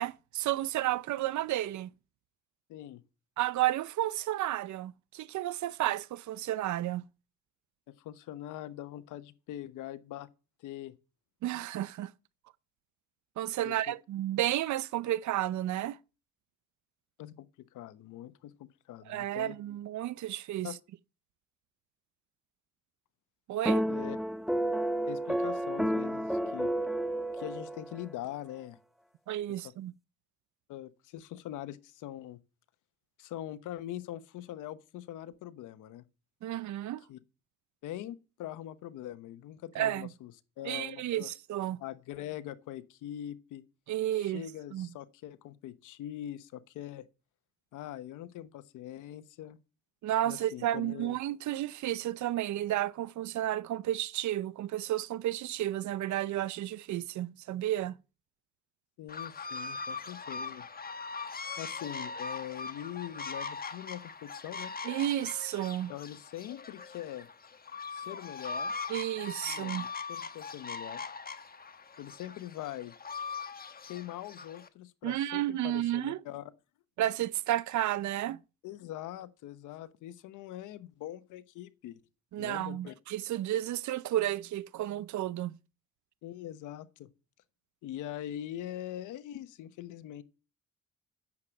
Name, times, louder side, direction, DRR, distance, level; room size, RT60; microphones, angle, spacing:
voice 1, 0.0-1.9 3.4-7.0 11.4-12.1 13.4-16.0 19.1-20.7 23.5-23.8 29.3-29.9 36.4-37.0 39.7-40.1 40.6-41.8 43.9-44.4 44.7-44.9 50.0-58.0 64.8-65.9 68.9-69.9 75.0-76.2 77.0-78.4 82.3-85.6, right 13 dB, 70° right, 0.6 m, -32 dB
voice 2, 2.7-3.0 7.9-10.3 10.6-10.9 13.6-14.0 17.2-17.5 17.7-19.6 20.6-20.8 23.9-24.2 25.1-26.7 27.3-28.8 30.7-32.4 33.2-36.0 37.1-37.2 37.8-40.3 40.6-41.3 41.8-43.6 44.1-47.0 47.7-49.6 50.3-51.2 59.0-60.6 61.6-64.7 65.9-67.3 67.9-68.7 69.4-71.0 72.0-72.9 73.8-76.5 78.6-82.0 82.4-82.9 86.2-87.1 87.8-90.2, left 12 dB, 90° left, 1.0 m, -42 dB
sound 1, 23.7-28.1, right 1 dB, ahead, 0.7 m, -31 dB
sound 2, 59.1-74.7, left 4 dB, 30° left, 1.2 m, -41 dB
9.7 x 7.5 x 9.0 m
cardioid pair, 90°, 30 cm